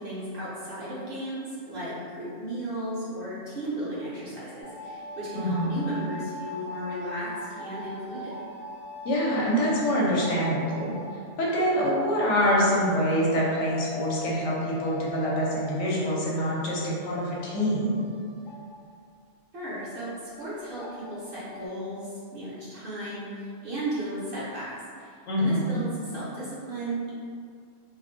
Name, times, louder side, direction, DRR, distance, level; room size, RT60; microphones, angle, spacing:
voice 1, 0.0-7.3 7.6-8.3 19.5-20.1 20.4-24.7 25.0-27.1, right 1 dB, 55° right, -9 dB, 0.7 m, -35 dB
sound 1, 4.6-18.9 19.3-19.4 19.7-21.7, left 2 dB, 50° left, 0.6 m, -41 dB
voice 2, 5.3-5.7 9.0-10.9 11.4-18.0 25.3-25.8, equal, 75° left, -5 dB, 0.9 m, -25 dB
2.4 x 2.1 x 2.5 m, 2.2 s
omnidirectional pair, 1.3 m